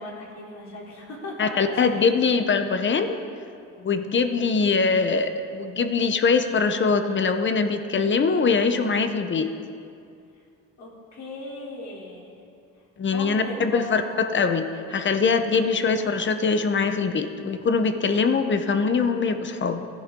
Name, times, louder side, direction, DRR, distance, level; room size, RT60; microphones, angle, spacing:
voice 1, 0.0-1.8 2.1-2.2 10.8-12.3 13.1-14.0, left 2 dB, 65° left, -4 dB, 3.5 m, -37 dB
voice 2, 1.4-3.2 3.8-9.5 13.0-19.9, left 4 dB, 40° left, 8 dB, 0.9 m, -23 dB
16.0 x 11.0 x 3.8 m, 2.5 s
cardioid pair, 90°, 30 cm